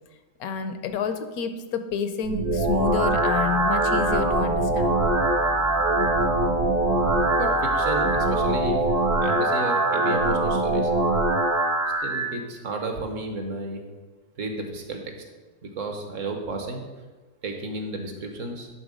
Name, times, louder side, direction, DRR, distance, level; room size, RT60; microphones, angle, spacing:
voice 1, 0.4-4.9, left 6 dB, 75° left, 9 dB, 1.1 m, -29 dB
sound 1, 2.2-12.2, right 2 dB, 80° right, 1.8 m, -23 dB
sound 2, 2.4-8.9, right 3 dB, 40° right, 0.6 m, -36 dB
voice 2, 7.4-8.8 9.2-10.9 12.0-13.9 14.4-15.1 15.6-16.9 17.4-18.7, right 2 dB, 60° right, 4 dB, 1.4 m, -32 dB
11.0 x 3.8 x 5.2 m, 1.3 s
omnidirectional pair, 1.6 m